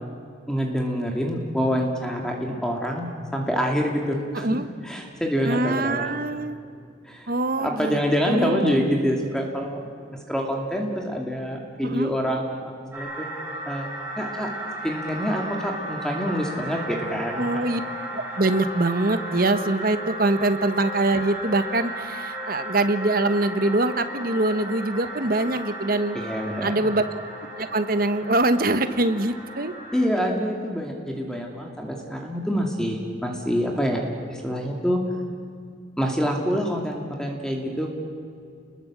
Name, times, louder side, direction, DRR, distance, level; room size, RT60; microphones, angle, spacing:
voice 1, 0.5-4.5 4.8-6.1 7.0-7.3 7.6-9.8 10.1-13.3 13.7-14.5 14.8-17.8 26.1-26.9 29.9-34.0 34.3-35.0 36.0-37.9, equal, 5° left, 1 dB, 2.4 m, -26 dB
voice 2, 4.3-4.7 5.4-6.6 7.3-8.0 8.3-8.8 11.8-12.1 17.4-17.8 18.1-26.2 26.6-27.0 27.6-29.7, right 2 dB, 50° right, 10 dB, 1.3 m, -23 dB
sound 1, 12.9-30.0, right 1 dB, 15° right, 6.1 m, -35 dB
30.0 x 21.5 x 7.6 m, 2.4 s
head